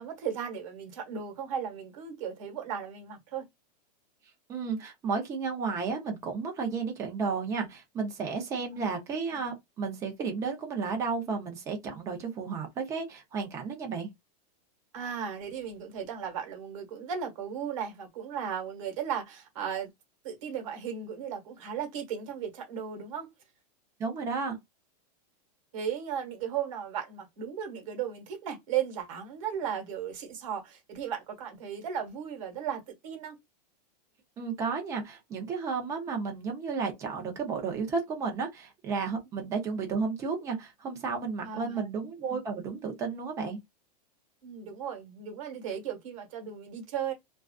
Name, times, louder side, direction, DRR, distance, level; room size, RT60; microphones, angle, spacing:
voice 1, 0.0-3.4 8.6-8.7 14.9-19.9 20.2-23.3 25.7-33.3 41.4-41.8 44.4-47.1, right 8 dB, 50° right, 1.2 m, -36 dB
voice 2, 4.5-14.1 24.0-24.6 34.4-43.6, right 5 dB, 15° right, 0.5 m, -33 dB
2.4 x 2.3 x 2.2 m
supercardioid pair, 170°, 21 cm